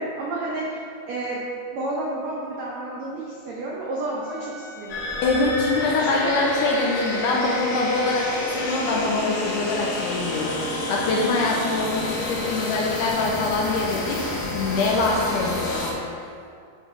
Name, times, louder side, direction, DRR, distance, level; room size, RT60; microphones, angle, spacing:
voice 1, 0.0-1.4 1.7-5.3 6.0-6.3, right 2 dB, 80° right, -5 dB, 1.5 m, -31 dB
Wind instrument woodwind instrument, 4.2-8.3, equal, 50° left, 1.9 m, -39 dB
sound 1, 4.9-15.9, left 2 dB, 65° left, 2.5 m, -29 dB
voice 2, 5.2-16.0, left 3 dB, 80° left, -2 dB, 1.8 m, -24 dB
9.7 x 5.4 x 3.2 m, 2.4 s
omnidirectional pair, 4.4 m